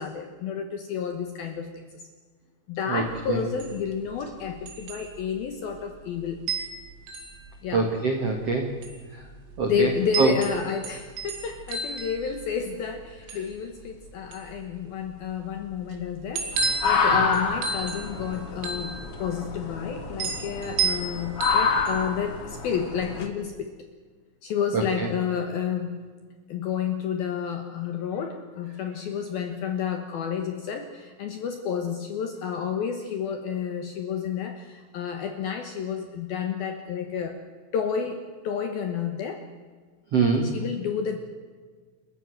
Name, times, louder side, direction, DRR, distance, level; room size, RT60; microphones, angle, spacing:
voice 1, 0.0-1.8 2.7-6.4 7.6-7.9 9.7-23.7 24.4-26.0 26.5-37.4 37.7-39.4 40.4-41.2, left 7 dB, 70° left, 6 dB, 2.3 m, -30 dB
sound 1, 3.1-22.2, right 4 dB, 80° right, 5.1 m, -34 dB
voice 2, 7.7-8.7 9.6-9.9 10.2-10.3 24.7-25.1 40.1-40.5, right 4 dB, 65° right, 3 dB, 1.5 m, -23 dB
sound 2, 16.5-23.3, left 5 dB, 90° left, 1.2 m, -28 dB
29.5 x 14.0 x 7.7 m, 1.5 s
omnidirectional pair, 5.9 m